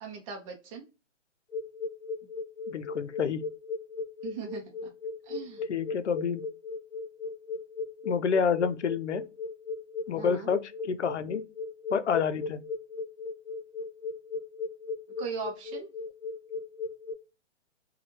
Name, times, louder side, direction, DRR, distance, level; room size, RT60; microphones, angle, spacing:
voice 1, 0.0-0.8 4.2-4.9 5.3-5.6 10.2-10.5 15.2-15.9, right 5 dB, 25° right, 0.7 m, -39 dB
sound 1, 1.5-17.1, left 3 dB, 15° left, 1.6 m, -36 dB
voice 2, 2.7-3.4 5.7-6.4 8.0-9.2 10.1-11.4 11.9-12.6, left 6 dB, 70° left, 0.6 m, -28 dB
4.1 x 2.4 x 3.1 m
figure-of-eight pair, 135°, 36 cm